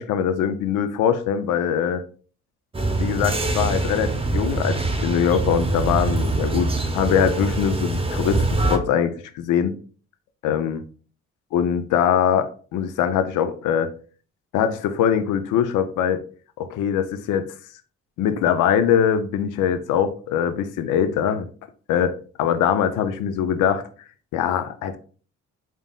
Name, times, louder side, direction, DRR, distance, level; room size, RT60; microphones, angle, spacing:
voice 1, 0.0-2.0 3.0-9.7 10.4-10.8 11.5-13.9 14.5-16.2 16.6-17.5 18.2-21.5 21.9-22.1 22.4-23.8 24.3-25.0, left 8 dB, 85° left, 0.5 m, -22 dB
sound 1, 2.7-8.8, right 2 dB, 20° right, 0.8 m, -24 dB
3.9 x 3.6 x 2.3 m
cardioid pair, 90°, 30 cm